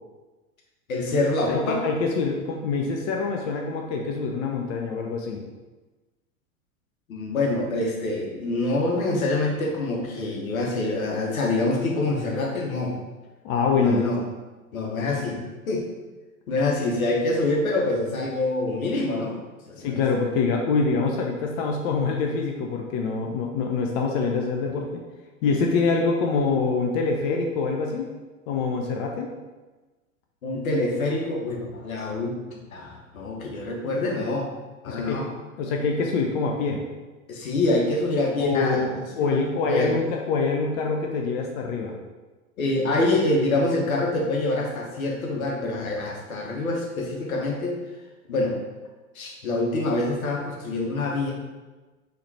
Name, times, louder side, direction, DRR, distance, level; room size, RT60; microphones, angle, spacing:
voice 1, 0.9-1.8 7.1-12.9 13.8-14.2 14.7-15.4 15.7-15.9 16.5-19.4 19.7-20.1 26.6-26.7 30.4-32.4 32.7-34.5 34.8-35.3 37.3-39.9 42.6-47.8 48.3-48.6 49.1-51.3, left 2 dB, 75° left, -1 dB, 1.2 m, -26 dB
voice 2, 1.5-5.4 13.4-14.0 19.8-25.0 25.4-28.1 28.5-29.3 34.9-35.3 35.6-36.8 38.4-38.9 39.2-41.9, left 4 dB, 40° left, 1 dB, 0.6 m, -25 dB
4.0 x 3.2 x 4.2 m, 1.2 s
figure-of-eight pair, 95°, 43 cm